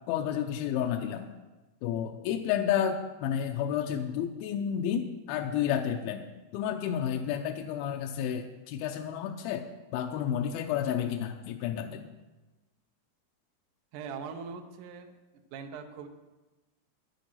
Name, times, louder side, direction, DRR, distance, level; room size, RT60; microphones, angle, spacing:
voice 1, 0.1-1.3 1.8-6.2 6.5-9.7 9.9-12.0, left 9 dB, 80° left, 4 dB, 2.2 m, -31 dB
voice 2, 13.9-15.1 15.5-16.1, right 6 dB, 85° right, 5 dB, 1.8 m, -41 dB
10.5 x 10.0 x 5.7 m, 1.1 s
omnidirectional pair, 4.8 m